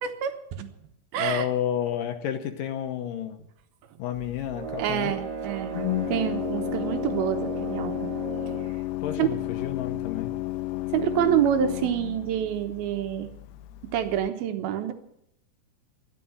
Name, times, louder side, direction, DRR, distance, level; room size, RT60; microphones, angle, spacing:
voice 1, 0.0-0.8 1.1-1.5 4.8-8.1 9.2-9.3 10.9-13.3 13.9-14.9, right 10 dB, 75° right, 8 dB, 2.9 m, -27 dB
voice 2, 1.2-3.4 4.0-5.2 9.0-10.3, left 10 dB, 70° left, 7 dB, 2.4 m, -30 dB
Organ, 4.1-14.3, left 16 dB, 85° left, 2.8 m, -33 dB
sound 1, 4.5-8.8, right 6 dB, 60° right, 2.3 m, -35 dB
13.0 x 11.5 x 7.8 m, 0.76 s
omnidirectional pair, 4.5 m